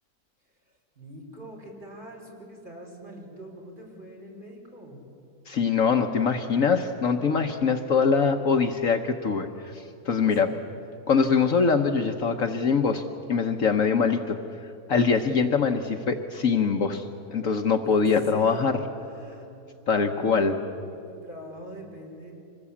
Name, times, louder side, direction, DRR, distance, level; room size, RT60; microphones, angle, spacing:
voice 1, 1.0-5.0 10.2-10.6 15.2-15.4 17.9-19.4 20.0-20.5 20.8-22.3, right 1 dB, 30° right, -2 dB, 5.4 m, -44 dB
voice 2, 5.5-10.5 11.1-13.0 13.3-14.4 14.9-18.8 19.9-20.5, left 5 dB, 55° left, 5 dB, 1.4 m, -23 dB
25.5 x 20.0 x 8.5 m, 2.7 s
omnidirectional pair, 1.7 m